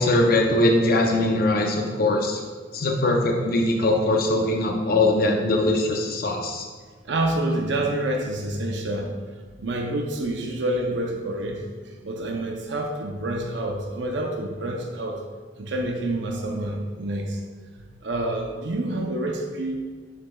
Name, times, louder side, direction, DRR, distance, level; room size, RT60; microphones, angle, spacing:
voice 1, 0.0-2.4 2.7-6.6, left 2 dB, 55° left, 1 dB, 0.6 m, -21 dB
voice 2, 7.0-9.1 9.6-15.2 15.6-17.4 18.0-19.8, right 1 dB, 80° right, 1 dB, 0.7 m, -28 dB
6.7 x 6.6 x 2.3 m, 1.5 s
head